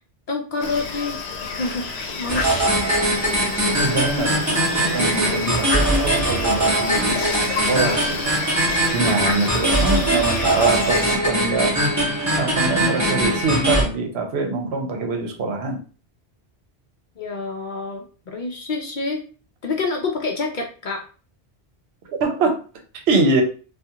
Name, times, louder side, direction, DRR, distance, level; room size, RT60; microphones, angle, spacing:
voice 1, 0.3-1.2 1.6-2.7 17.2-19.2 19.6-21.0, left 3 dB, 60° left, 2 dB, 0.6 m, -27 dB
sound 1, 0.6-11.2, left 4 dB, 75° left, 0.9 m, -30 dB
sound 2, 2.3-13.8, right 1 dB, 20° right, 0.6 m, -21 dB
voice 2, 3.8-4.6 4.9-7.3 7.7-8.2 8.9-11.7 12.4-15.8 22.1-22.6 23.1-23.4, right 3 dB, 75° right, 3 dB, 0.9 m, -23 dB
2.3 x 2.3 x 2.8 m, 0.37 s
omnidirectional pair, 1.1 m